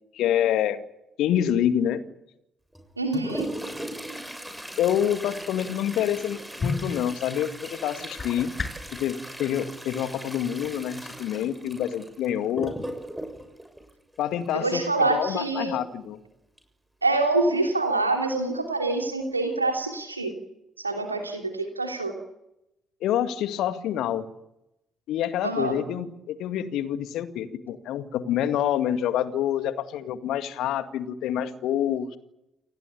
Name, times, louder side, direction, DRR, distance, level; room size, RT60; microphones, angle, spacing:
voice 1, 0.1-0.8 1.2-2.0 4.8-8.5 8.9-12.8 14.2-16.2 23.0-24.3 25.1-32.2, left 10 dB, 60° left, 10 dB, 2.1 m, -27 dB
Toilet flush, 2.7-14.7 16.6-16.7 17.0-17.1 17.9-18.0 18.6-18.9 19.3-19.5, right 1 dB, 5° right, 7.1 m, -38 dB
voice 2, 3.0-3.5 14.5-15.8 17.0-20.3 20.8-22.1 25.4-25.8, right 2 dB, 85° right, 4 dB, 3.0 m, -26 dB
sound 1, 6.4-9.0, left 4 dB, 35° left, 6.1 m, -34 dB
29.5 x 20.0 x 8.5 m, 0.87 s
figure-of-eight pair, 45°, 0 cm